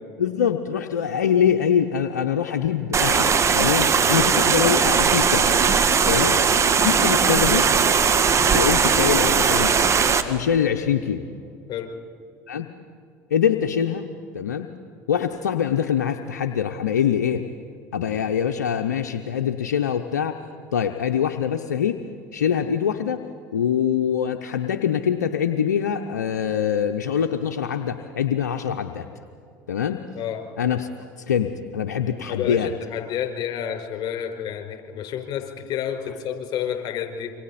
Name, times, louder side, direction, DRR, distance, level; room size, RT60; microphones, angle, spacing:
voice 1, 0.2-5.5 6.1-6.4 6.8-7.7 8.5-9.8 10.3-11.2 12.5-12.7 13.3-14.1 14.3-14.7 15.1-17.5 17.9-20.4 20.7-22.0 22.3-23.3 23.5-29.1 29.7-30.0 30.6-30.9 31.2-32.7, left 8 dB, 90° left, 6 dB, 0.8 m, -24 dB
sound 1, 2.9-10.2, right 6 dB, 30° right, 1.6 m, -19 dB
voice 2, 32.3-37.3, left 9 dB, 50° left, 4 dB, 4.9 m, -30 dB
27.5 x 24.5 x 4.2 m, 2.5 s
hypercardioid pair, 80°, 9 cm